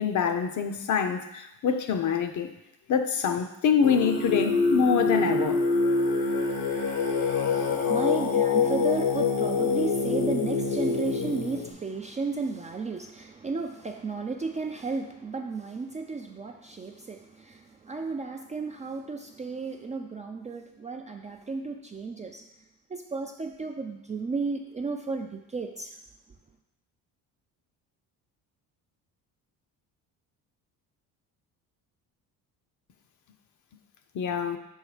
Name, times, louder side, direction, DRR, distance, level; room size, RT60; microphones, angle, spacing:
voice 1, 0.0-2.5 2.9-5.6 34.1-34.6, left 7 dB, 50° left, 7 dB, 0.7 m, -25 dB
Singing, 3.8-11.7, left 4 dB, 75° left, 1.2 m, -25 dB
voice 2, 7.3-22.4 22.9-26.0, right 4 dB, 20° right, 3 dB, 0.4 m, -33 dB
6.5 x 3.2 x 4.9 m, 0.86 s
cardioid pair, 100°, 39 cm